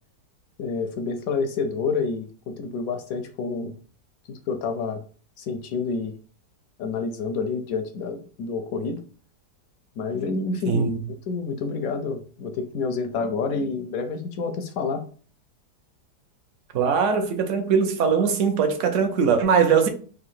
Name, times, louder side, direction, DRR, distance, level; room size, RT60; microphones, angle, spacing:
voice 1, 0.6-3.7 4.3-5.0 5.4-6.1 6.8-9.0 10.0-11.0 11.3-15.0, left 4 dB, 70° left, 0.8 m, -28 dB
voice 2, 10.7-11.0 16.7-19.9, right 6 dB, 60° right, 0.8 m, -21 dB
3.7 x 2.6 x 4.2 m
omnidirectional pair, 1.9 m